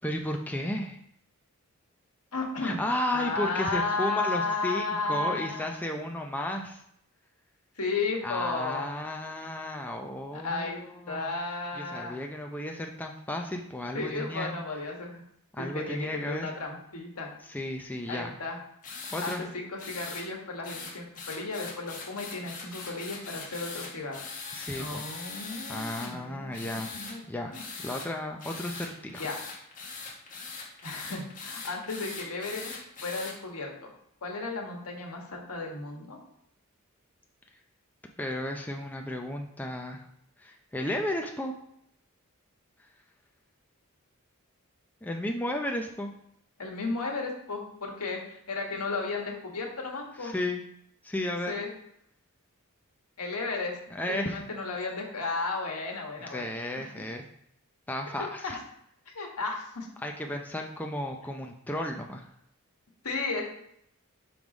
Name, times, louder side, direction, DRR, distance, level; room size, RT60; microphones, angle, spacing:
voice 1, 0.0-1.0 2.6-6.8 8.2-11.3 11.8-14.5 15.5-16.5 17.5-18.3 19.1-19.4 24.5-25.0 25.7-26.9 27.3-27.5 27.8-29.2 38.2-40.0 40.4-41.5 45.0-46.1 50.2-50.6 51.0-51.5 53.9-54.4 56.2-57.2 57.9-58.6 60.0-62.3, left 1 dB, 5° left, 2 dB, 0.5 m, -33 dB
voice 2, 2.3-2.8 3.1-5.8 7.8-8.9 10.3-10.8 11.1-12.2 13.9-15.2 15.6-17.3 18.1-18.6 19.2-24.2 24.7-27.6 29.2-29.4 30.8-32.7 33.0-33.9 34.2-36.2 46.6-50.3 51.5-51.7 53.2-53.8 54.1-56.5 56.8-56.9 58.4-58.6 59.1-59.9 63.0-63.4, left 3 dB, 80° left, 1 dB, 1.5 m, -34 dB
sound 1, 18.8-19.4 19.8-20.2 20.6-26.1 26.5-27.1 27.5-28.1 28.4-33.3, left 4 dB, 35° left, 1.5 m, -41 dB
5.4 x 4.7 x 5.1 m, 0.73 s
head